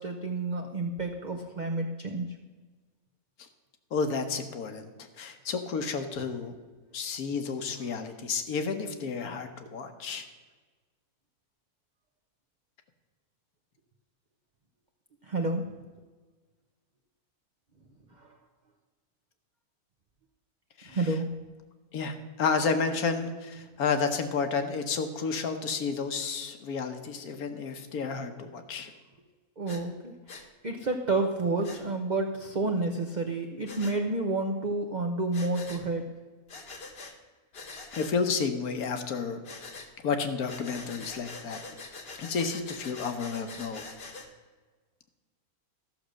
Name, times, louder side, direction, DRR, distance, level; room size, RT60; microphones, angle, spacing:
voice 1, 0.0-2.3 15.2-15.7 18.2-18.4 20.9-21.3 29.6-30.1 30.6-36.1, right 2 dB, 40° right, 3 dB, 0.7 m, -30 dB
voice 2, 3.9-6.5 6.9-10.3 20.8-21.0 21.9-28.9 37.9-39.4 40.0-41.6 42.2-43.8, left 5 dB, 75° left, 8 dB, 1.5 m, -31 dB
Breathing, 29.7-29.8 30.3-30.5 31.6-31.8 33.7-34.0 35.3-35.8 36.5-37.1 37.5-38.1 39.4-39.9 40.5-44.3, left 3 dB, 45° left, 1.2 m, -44 dB
13.5 x 6.5 x 6.4 m, 1.4 s
omnidirectional pair, 1.6 m